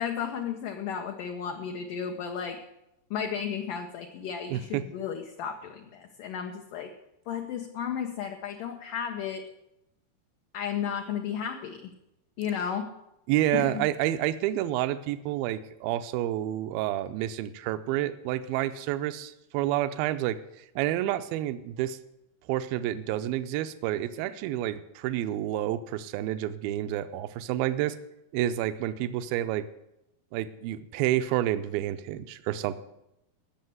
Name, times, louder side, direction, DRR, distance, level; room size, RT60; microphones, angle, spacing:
voice 1, 0.0-2.6 3.1-6.9 7.3-9.5 10.5-11.9 12.4-12.9 13.5-13.8 24.2-24.3, left 7 dB, 70° left, 3 dB, 2.1 m, -33 dB
voice 2, 4.5-4.8 13.3-22.0 22.5-28.0 28.3-29.7 30.3-32.8, right 13 dB, 80° right, 11 dB, 2.2 m, -29 dB
17.5 x 6.6 x 7.9 m, 0.86 s
omnidirectional pair, 4.8 m